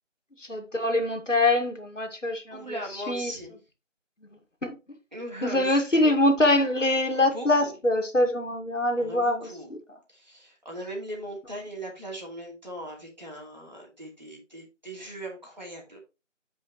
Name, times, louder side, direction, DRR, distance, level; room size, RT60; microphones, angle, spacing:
voice 1, 0.4-2.6 3.1-3.3 4.2-4.8 5.4-9.5, left 1 dB, 70° left, 2.1 m, -24 dB
voice 2, 2.5-3.6 5.1-6.0 6.9-7.7 9.0-9.7 10.1-16.0, right 1 dB, 35° right, 2.6 m, -39 dB
9.1 x 5.1 x 3.1 m
figure-of-eight pair, 175°, 38 cm